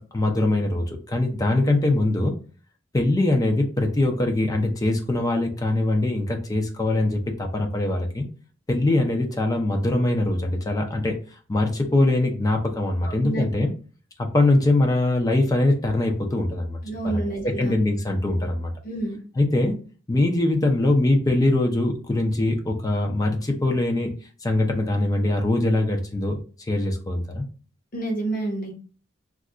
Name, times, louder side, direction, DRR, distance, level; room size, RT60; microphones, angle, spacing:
voice 1, 0.0-2.3 2.9-8.3 8.7-11.2 11.5-13.7 14.2-16.8 17.0-18.7 19.4-19.8 20.1-24.1 24.4-26.4 26.7-27.4, left 2 dB, 20° left, 3 dB, 0.4 m, -22 dB
voice 2, 13.0-13.4 16.8-17.7 18.8-19.2 27.9-28.7, right 2 dB, 45° left, 1 dB, 0.9 m, -29 dB
2.4 x 2.2 x 3.7 m, 0.38 s
head